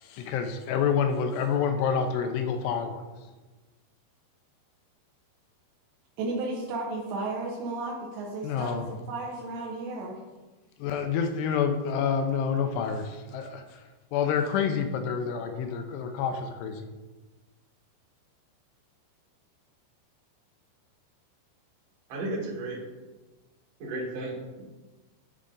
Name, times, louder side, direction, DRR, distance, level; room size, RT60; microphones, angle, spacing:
voice 1, 0.0-3.0 8.4-8.9 10.8-13.8 14.1-16.9, left 7 dB, 80° left, 6 dB, 2.6 m, -28 dB
voice 2, 6.2-10.2, right 2 dB, 80° right, -3 dB, 3.1 m, -34 dB
voice 3, 22.1-22.8 23.8-24.6, right 2 dB, 55° right, -4 dB, 1.8 m, -34 dB
10.5 x 4.9 x 3.8 m, 1.2 s
omnidirectional pair, 5.0 m